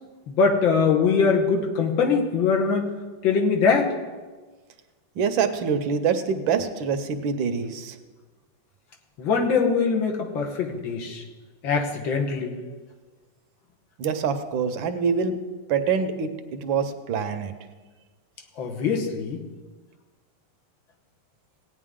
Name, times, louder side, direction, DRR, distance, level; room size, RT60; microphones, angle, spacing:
voice 1, 0.3-2.9 3.2-3.9 9.2-11.2 11.6-12.5 18.6-19.4, left 5 dB, 85° left, 2 dB, 2.0 m, -22 dB
voice 2, 5.2-8.0 14.0-15.4 15.7-17.5, right 6 dB, 85° right, 9 dB, 1.6 m, -25 dB
17.0 x 9.2 x 3.7 m, 1.3 s
omnidirectional pair, 2.1 m